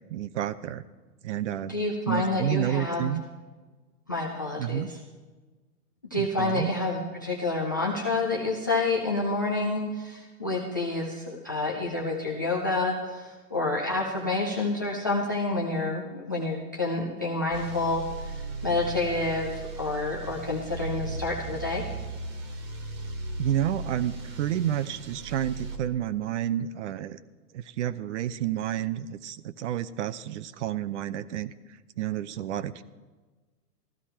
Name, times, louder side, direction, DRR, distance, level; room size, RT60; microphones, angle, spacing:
voice 1, 0.1-0.8 1.2-1.8 2.1-3.2 4.6-4.9 6.2-6.7 23.4-27.2 27.5-31.5 32.0-32.8, right 11 dB, 50° right, 15 dB, 0.7 m, -30 dB
voice 2, 1.7-3.0 4.1-5.0 6.1-21.8, left 2 dB, 15° left, -5 dB, 0.3 m, -28 dB
sound 1, 17.5-25.8, right 3 dB, 25° right, 1.5 m, -37 dB
14.5 x 12.5 x 4.4 m, 1.3 s
hypercardioid pair, 130°, 48 cm